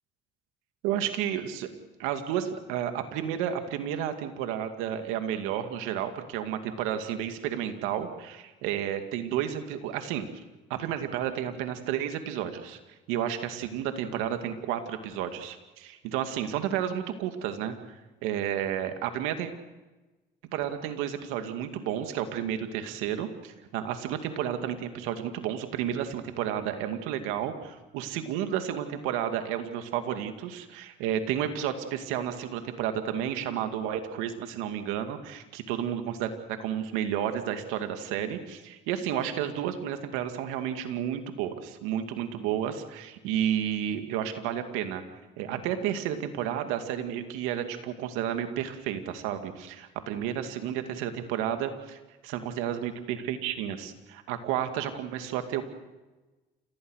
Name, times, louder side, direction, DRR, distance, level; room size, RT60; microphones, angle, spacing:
voice 1, 0.8-1.7 2.0-10.2 10.7-12.8 13.1-19.5 20.5-45.0 45.4-55.6, right 10 dB, 85° right, 7 dB, 2.3 m, -31 dB
29.0 x 16.0 x 6.5 m, 1.1 s
supercardioid pair, 65°, 20 cm